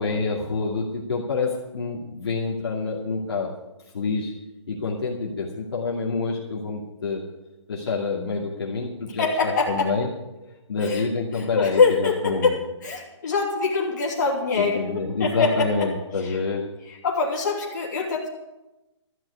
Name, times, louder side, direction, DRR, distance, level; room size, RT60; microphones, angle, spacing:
voice 1, 0.0-3.5 3.9-4.3 4.7-7.2 7.7-10.1 10.4-12.6 14.6-16.7, left 4 dB, 55° left, -4 dB, 2.4 m, -27 dB
voice 2, 9.2-9.9 10.8-11.0 11.6-12.5 12.8-15.7 16.2-16.4 17.0-18.3, left 4 dB, 40° left, -3 dB, 3.0 m, -23 dB
13.5 x 6.2 x 9.6 m, 0.99 s
hypercardioid pair, 180°, 16 cm